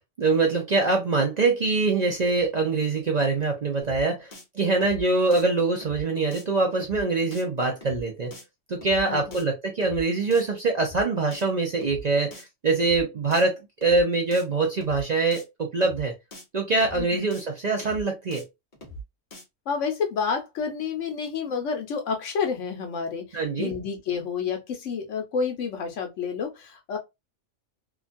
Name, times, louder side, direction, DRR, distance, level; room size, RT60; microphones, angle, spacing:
voice 1, 0.2-8.3 8.7-16.1 16.5-18.4 23.3-23.7, right 3 dB, 50° right, 0.5 m, -24 dB
sound 1, 3.8-4.0 4.3-4.4 4.7-5.0 5.3-5.4 5.8-6.0 6.3-6.4 6.7-7.0 7.3-7.4 7.8-8.0 8.3-8.4 8.7-9.0 9.3-9.4 9.8-10.0 10.3-10.4 10.7-11.0 11.3-11.4 11.8-12.0 12.3-12.4 12.7-13.0 13.3-13.4 13.8-14.0 14.3-14.4 14.7-15.0 15.3-15.4 15.8-16.0 16.3-16.4 16.7-17.0 17.3-17.4 17.8-18.0 18.3-18.4 18.7-19.0 19.3-19.4, right 1 dB, 45° left, 1.1 m, -42 dB
voice 2, 9.0-9.4 17.0-17.2 19.7-27.0, left 6 dB, 80° left, 1.1 m, -29 dB
2.9 x 2.3 x 2.5 m
omnidirectional pair, 1.3 m